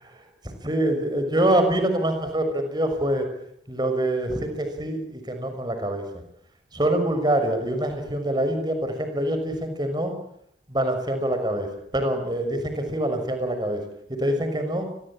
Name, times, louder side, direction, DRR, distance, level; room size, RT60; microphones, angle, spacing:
voice 1, 0.6-3.3 3.7-6.0 6.7-10.1 10.7-13.8 14.1-14.9, right 1 dB, 25° right, 7 dB, 6.3 m, -25 dB
29.5 x 23.0 x 8.8 m, 0.73 s
head